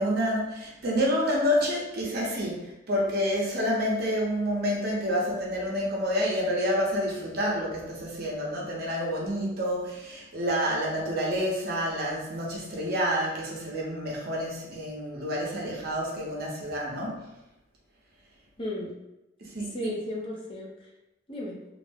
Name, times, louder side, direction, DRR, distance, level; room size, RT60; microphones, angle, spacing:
voice 1, 0.0-17.2 19.4-19.7, equal, 50° right, -3 dB, 0.7 m, -28 dB
voice 2, 18.6-18.9 19.6-20.9 21.3-21.6, left 1 dB, 25° left, -3 dB, 0.5 m, -34 dB
2.4 x 2.1 x 3.3 m, 0.94 s
head